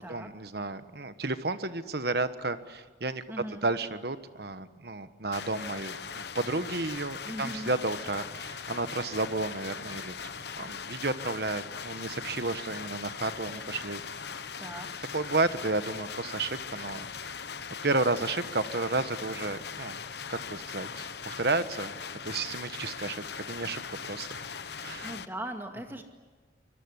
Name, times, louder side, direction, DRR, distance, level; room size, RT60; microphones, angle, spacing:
voice 1, 0.1-3.2 3.6-10.1 10.6-14.0 15.1-17.1 17.8-20.0 20.3-21.9 22.2-23.8 24.1-24.4 24.8-25.1, right 3 dB, 55° right, 11 dB, 1.3 m, -32 dB
voice 2, 3.3-3.7 7.2-7.7 14.6-14.9 25.0-26.0, right 1 dB, 10° right, 4 dB, 2.2 m, -39 dB
sound 1, 5.3-25.3, left 6 dB, 60° left, 1.0 m, -40 dB
25.0 x 21.5 x 9.8 m, 1.3 s
head